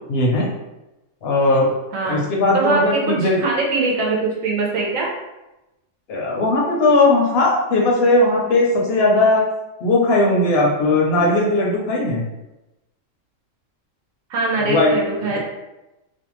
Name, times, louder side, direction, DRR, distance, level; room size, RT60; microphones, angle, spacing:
voice 1, 0.1-0.5 1.2-1.7 2.0-3.3 6.1-9.5 9.8-12.2 14.6-14.9, left 2 dB, 65° left, -2 dB, 0.7 m, -17 dB
voice 2, 2.5-5.1 14.3-15.4, right 3 dB, 85° right, -2 dB, 1.0 m, -22 dB
2.6 x 2.1 x 2.9 m, 0.98 s
omnidirectional pair, 1.4 m